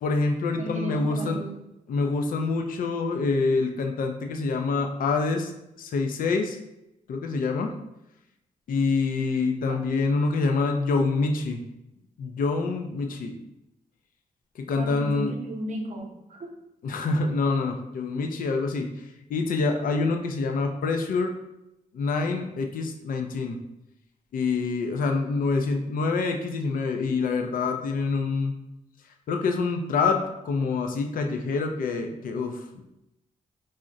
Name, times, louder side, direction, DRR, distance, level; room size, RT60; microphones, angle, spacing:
voice 1, 0.0-1.4 1.9-5.5 5.8-6.6 7.1-7.8 8.7-11.6 12.2-13.4 14.6-15.3 16.8-18.9 19.3-21.3 21.9-23.6 24.3-28.5 29.3-32.8, left 4 dB, 70° left, 4 dB, 0.4 m, -26 dB
voice 2, 0.6-1.5 9.7-9.8 14.8-16.5, right 2 dB, 55° right, 1 dB, 0.6 m, -34 dB
2.5 x 2.1 x 3.8 m, 0.87 s
cardioid pair, 70°, 15 cm